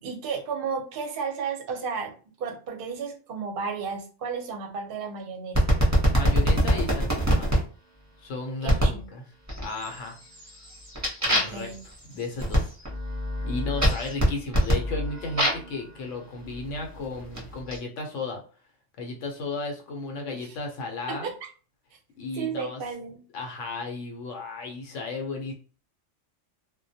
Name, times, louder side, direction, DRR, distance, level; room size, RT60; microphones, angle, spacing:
voice 1, 0.0-2.1 2.4-5.8 8.6-9.0 11.3-11.8 13.4-13.5 20.3-20.6 21.1-21.5 22.3-23.2, right 5 dB, 55° right, 2 dB, 0.7 m, -33 dB
sound 1, 5.5-7.6 8.7-9.0 9.5-10.0 10.3-15.7 16.5-17.8, equal, 15° right, 0.6 m, -24 dB
voice 2, 6.1-7.6 8.2-9.2 9.6-10.2 11.2-11.7 12.1-12.7 13.5-18.4 19.0-21.3 22.2-22.8 23.3-25.5, left 3 dB, 80° left, 3 dB, 1.0 m, -34 dB
2.2 x 2.1 x 2.6 m, 0.38 s
omnidirectional pair, 1.3 m